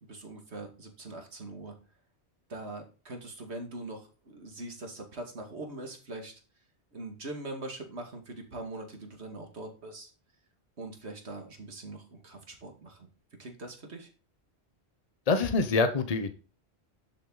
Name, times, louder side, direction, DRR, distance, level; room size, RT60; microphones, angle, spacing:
voice 1, 0.0-1.8 2.5-6.3 6.9-10.1 10.8-13.1 13.4-14.1, right 2 dB, 80° right, 3 dB, 2.4 m, -42 dB
voice 2, 15.3-16.3, left 4 dB, 35° left, 9 dB, 1.1 m, -25 dB
11.5 x 7.4 x 4.0 m, 0.35 s
omnidirectional pair, 1.1 m